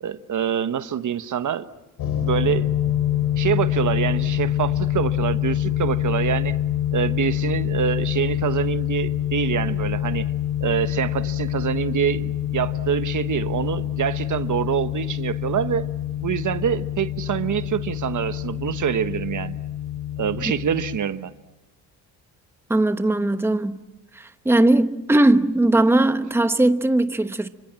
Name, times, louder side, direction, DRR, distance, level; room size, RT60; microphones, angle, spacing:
voice 1, 0.0-1.7 2.2-2.7 3.4-6.6 6.9-10.3 10.6-15.9 16.2-19.6 20.2-21.3, right 9 dB, 50° right, 1.2 m, -25 dB
sound 1, 2.0-21.0, left 12 dB, 80° left, 4.6 m, -26 dB
voice 2, 22.7-23.8 24.1-27.5, right 1 dB, 5° right, 1.1 m, -19 dB
29.5 x 25.5 x 7.6 m
cardioid pair, 85°, 38 cm